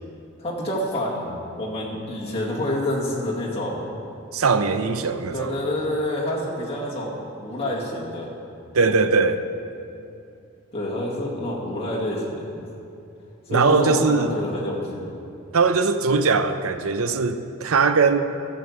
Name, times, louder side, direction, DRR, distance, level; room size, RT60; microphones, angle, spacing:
voice 1, 0.4-3.9 5.3-8.3 10.7-12.6 13.5-15.1, left 1 dB, 25° left, -5 dB, 2.0 m, -28 dB
voice 2, 4.3-5.6 8.7-9.4 13.5-14.3 15.5-18.2, right 4 dB, 75° right, 10 dB, 0.6 m, -20 dB
12.5 x 6.5 x 7.3 m, 2.6 s
head